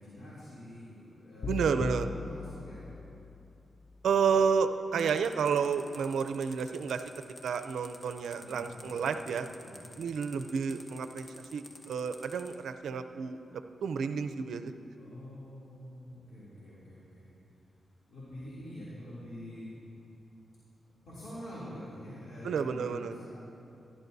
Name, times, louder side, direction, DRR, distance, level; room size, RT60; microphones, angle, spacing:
voice 1, 0.0-2.9 8.4-8.9 9.6-9.8 15.0-17.3 18.1-19.9 21.0-23.2, left 1 dB, 75° left, -11 dB, 2.8 m, -46 dB
sound 1, 1.4-3.5, left 5 dB, 60° left, 0.3 m, -39 dB
voice 2, 1.5-2.1 4.0-7.0 7.4-9.5 10.0-14.7 22.4-23.1, right 6 dB, 85° right, 9 dB, 0.5 m, -30 dB
sound 2, 5.0-12.5, left 2 dB, 45° left, 1.2 m, -51 dB
16.5 x 11.5 x 2.7 m, 2.7 s
cardioid pair, 65°, 0 cm